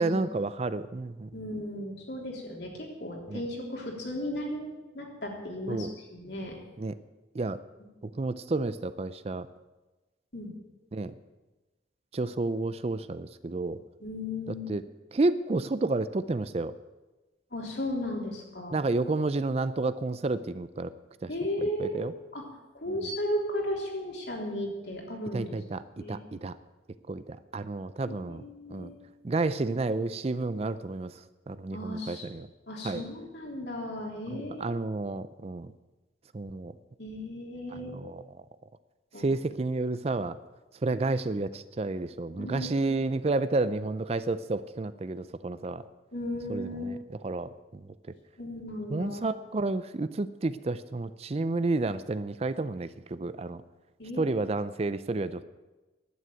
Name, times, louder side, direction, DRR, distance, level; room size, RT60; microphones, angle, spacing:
voice 1, 0.0-1.3 3.3-3.4 5.7-5.9 6.8-6.9 7.3-7.6 8.2-9.5 10.9-11.1 12.1-13.8 14.7-14.8 15.1-16.7 18.7-20.9 21.2-21.3 21.6-22.1 25.3-26.6 27.1-28.4 28.7-28.9 29.2-31.2 31.5-32.5 32.8-33.0 34.3-35.7 36.3-36.7 37.7-38.2 39.2-40.4 40.8-45.8 46.5-46.7 47.2-47.8 48.9-53.6 54.2-55.4, right 3 dB, 35° right, 14 dB, 0.4 m, -30 dB
voice 2, 1.3-6.6 10.3-10.5 14.0-14.7 17.5-18.8 21.3-22.0 22.3-22.4 22.7-26.2 28.1-29.0 31.7-32.3 32.7-34.8 37.0-38.0 39.1-39.3 42.4-43.0 46.1-46.8 48.4-49.3 54.0-54.3, left 1 dB, 60° left, -1 dB, 3.5 m, -35 dB
11.0 x 9.4 x 9.1 m, 1.2 s
head